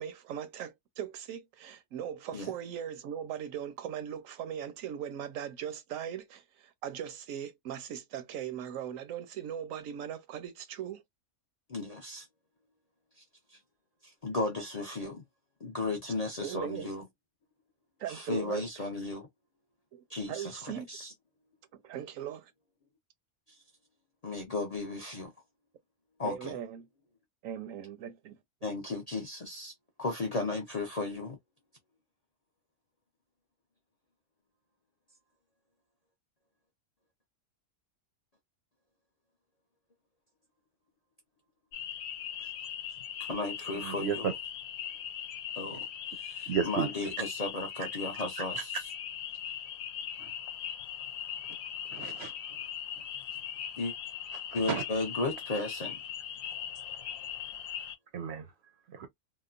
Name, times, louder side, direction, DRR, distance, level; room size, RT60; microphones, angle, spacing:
voice 1, 0.0-11.0 16.4-16.9 18.0-18.9 19.9-20.9 21.8-22.5 26.2-26.9 27.4-28.7, right 9 dB, 80° right, 1.0 m, -39 dB
voice 2, 11.7-12.3 14.0-15.2 15.6-17.0 18.1-19.3 20.1-21.1 24.2-25.3 26.2-26.5 28.6-29.7 30.0-31.4 42.4-42.5 43.2-44.3 45.6-45.8 46.1-48.7 53.8-53.9 54.5-56.0, left 2 dB, 45° left, 0.5 m, -35 dB
sound 1, 41.7-57.9, left 9 dB, 80° left, 1.0 m, -40 dB
voice 3, 43.7-44.3 45.7-45.9 46.5-46.9 48.5-48.6 50.2-50.3 51.9-52.3 53.0-53.1 54.3-54.8 58.1-58.5 58.9-59.1, right 7 dB, 65° right, 0.7 m, -34 dB
2.9 x 2.1 x 2.4 m
omnidirectional pair, 1.4 m